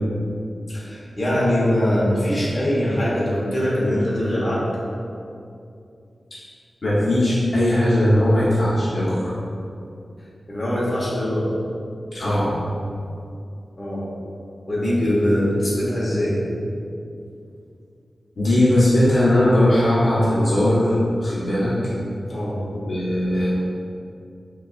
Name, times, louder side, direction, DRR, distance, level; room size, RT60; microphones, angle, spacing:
voice 1, 0.7-4.6 10.5-11.5 13.8-14.1 14.7-16.4 22.3-22.6, equal, 35° left, -7 dB, 1.0 m, -22 dB
voice 2, 6.8-9.3 12.1-12.6 18.4-21.7 22.7-23.5, left 1 dB, 65° left, -9 dB, 0.9 m, -19 dB
5.7 x 2.4 x 2.4 m, 2.5 s
wide cardioid pair, 75°, 0 cm